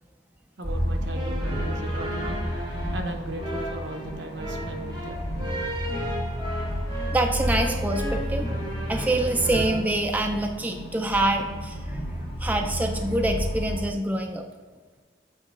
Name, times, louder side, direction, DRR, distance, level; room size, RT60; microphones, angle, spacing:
sound 1, 0.6-13.8, equal, 55° left, 1.6 m, -31 dB
voice 1, 0.6-2.4 2.9-5.2, right 1 dB, 65° right, 3 dB, 0.8 m, -37 dB
sound 2, 1.1-9.7, equal, 25° right, 1.2 m, -34 dB
voice 2, 7.1-14.4, right 1 dB, 10° right, 3 dB, 0.4 m, -26 dB
7.6 x 3.0 x 4.7 m, 1.4 s
head